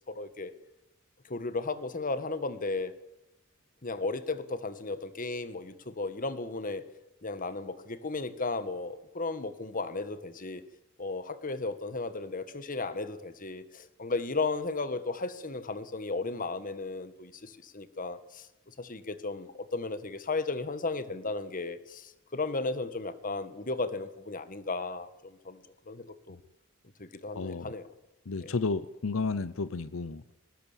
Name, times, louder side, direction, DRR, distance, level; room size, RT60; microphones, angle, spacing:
voice 1, 0.1-0.5 1.3-2.9 3.8-6.8 7.2-10.6 11.0-18.5 18.8-26.4 27.0-27.9 28.4-28.5, left 3 dB, 45° left, 12 dB, 1.5 m, -35 dB
voice 2, 27.4-27.7 28.3-30.3, left 4 dB, 80° left, 15 dB, 0.7 m, -32 dB
20.0 x 19.5 x 7.3 m, 0.97 s
head